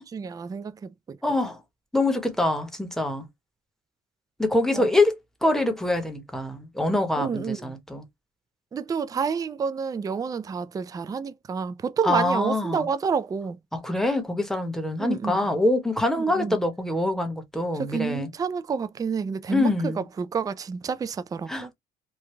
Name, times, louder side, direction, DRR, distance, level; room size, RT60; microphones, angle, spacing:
voice 1, 0.0-1.2 4.7-4.9 7.2-7.8 8.7-13.6 15.0-15.4 16.2-16.6 17.7-21.7, right 6 dB, 20° right, 0.3 m, -29 dB
voice 2, 1.2-1.6 1.9-3.3 4.4-8.0 12.0-12.9 13.7-18.3 19.5-20.0 21.5-21.7, left 2 dB, ahead, 1.0 m, -25 dB
3.2 x 2.2 x 3.1 m
cardioid pair, 110°, 17 cm